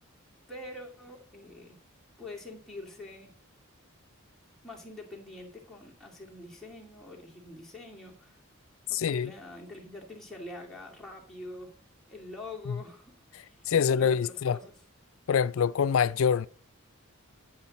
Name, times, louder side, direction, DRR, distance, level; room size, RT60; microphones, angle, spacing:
voice 1, 0.5-1.8 2.2-3.3 4.6-8.4 8.9-11.7 12.1-14.7, left 2 dB, ahead, 2.4 m, -45 dB
voice 2, 8.9-9.3 12.7-12.8 13.7-14.6 15.3-16.5, left 7 dB, 70° left, 0.4 m, -25 dB
10.0 x 8.7 x 4.1 m
head